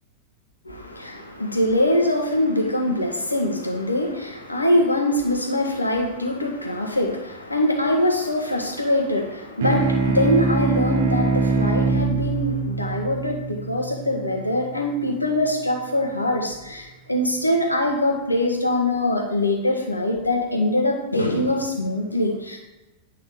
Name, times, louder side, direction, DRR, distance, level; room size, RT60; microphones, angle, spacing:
voice 1, 0.6-22.6, left 1 dB, 85° left, 2 dB, 1.4 m, -23 dB
sound 1, 9.6-14.5, right 4 dB, 60° right, 1.1 m, -23 dB
9.1 x 5.5 x 4.9 m, 1.0 s
figure-of-eight pair, 90°, 0 cm